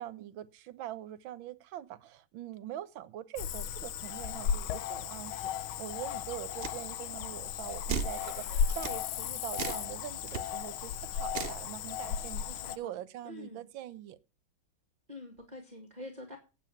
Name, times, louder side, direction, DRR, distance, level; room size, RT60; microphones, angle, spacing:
voice 1, 0.0-14.2, right 12 dB, 75° right, 1.5 m, -43 dB
Cricket / Frog, 3.4-12.8, left 8 dB, 85° left, 1.6 m, -35 dB
sound 1, 6.6-6.8 7.9-8.2 8.8-9.0 9.5-9.9 10.3-10.4 11.3-11.6, right 5 dB, 55° right, 0.6 m, -34 dB
voice 2, 12.4-12.9 13.2-13.6 15.1-16.4, left 2 dB, 20° right, 2.0 m, -46 dB
8.8 x 8.6 x 7.2 m
omnidirectional pair, 2.2 m